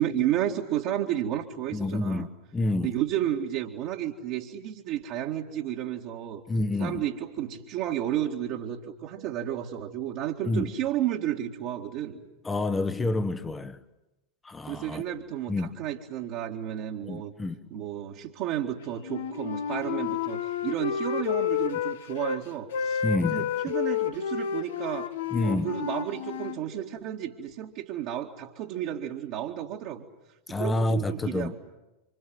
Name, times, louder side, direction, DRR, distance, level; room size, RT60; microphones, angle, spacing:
voice 1, 0.0-2.3 2.8-6.4 6.8-12.2 14.7-17.3 17.7-23.0 23.3-25.1 25.4-30.0 30.6-31.6, right 11 dB, 45° right, 2.1 m, -32 dB
voice 2, 1.7-2.9 6.5-7.0 10.4-10.7 12.4-13.8 14.4-15.0 15.5-15.7 17.0-17.6 23.0-23.5 25.3-25.7 30.5-31.5, left 2 dB, 10° left, 1.3 m, -28 dB
Wind instrument woodwind instrument, 19.0-22.4 22.7-26.6, left 8 dB, 60° left, 1.3 m, -30 dB
27.0 x 26.5 x 7.9 m
figure-of-eight pair, 90°, 0 cm